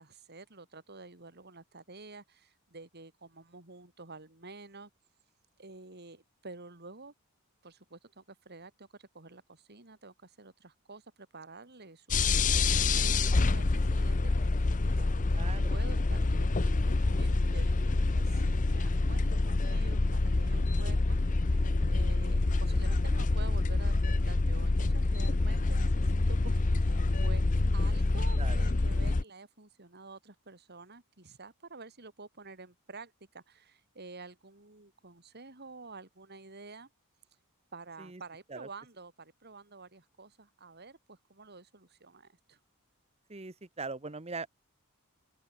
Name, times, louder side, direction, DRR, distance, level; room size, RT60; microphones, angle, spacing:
voice 1, 0.0-4.9 5.6-7.1 7.6-24.0 24.2-27.5 27.7-36.9 37.7-42.6, right 3 dB, 50° right, 3.4 m, -50 dB
sound 1, 12.1-29.2, left 3 dB, 35° left, 0.7 m, -27 dB
voice 2, 15.4-15.7 27.6-28.0 28.4-28.6 38.0-38.2 38.5-38.7 43.3-44.5, right 4 dB, 30° right, 1.2 m, -41 dB
open air
head